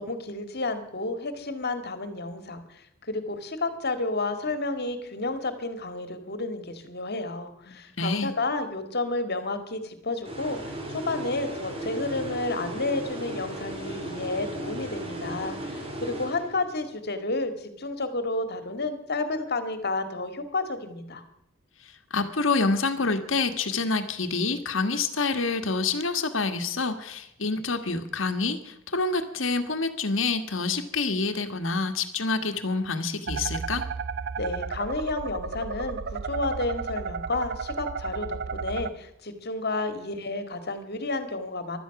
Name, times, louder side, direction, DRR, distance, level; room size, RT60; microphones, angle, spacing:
voice 1, 0.0-21.2 34.4-41.8, left 2 dB, 55° left, 9 dB, 2.1 m, -31 dB
voice 2, 7.7-8.3 22.1-33.9, left 3 dB, 70° left, 8 dB, 1.7 m, -27 dB
sound 1, 10.2-16.9, right 1 dB, 30° right, 2.9 m, -36 dB
sound 2, 33.3-38.9, right 5 dB, 55° right, 0.6 m, -33 dB
16.0 x 12.5 x 6.0 m, 0.79 s
head